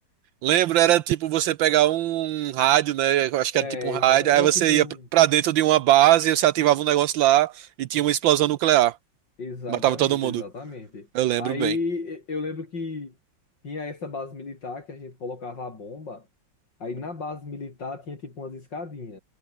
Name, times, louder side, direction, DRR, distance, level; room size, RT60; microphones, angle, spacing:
voice 1, 0.4-4.8 5.1-8.9 9.7-10.4 11.1-11.8, right 13 dB, 80° right, 1.5 m, -20 dB
voice 2, 3.5-5.1 9.4-11.1 11.4-13.1 13.6-16.3 16.8-19.2, left 3 dB, 65° left, 5.0 m, -34 dB
omnidirectional pair, 2.1 m